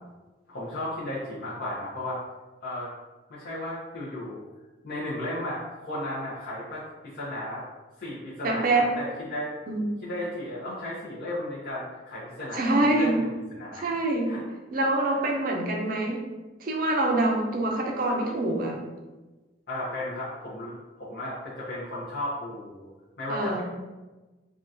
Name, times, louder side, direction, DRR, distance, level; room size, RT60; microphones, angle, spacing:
voice 1, 0.5-2.2 2.6-2.9 3.3-4.4 4.8-6.8 7.1-7.6 8.0-9.5 10.0-13.3 13.5-13.9 14.3-14.4 14.7-15.2 19.7-22.9 23.2-23.6, left 1 dB, 55° left, -10 dB, 0.7 m, -34 dB
voice 2, 8.4-8.8 9.7-9.9 12.5-13.2 13.7-14.4 14.7-16.2 16.6-18.8 23.3-23.6, right 2 dB, 45° right, 0 dB, 0.5 m, -25 dB
3.6 x 2.4 x 2.6 m, 1.2 s
head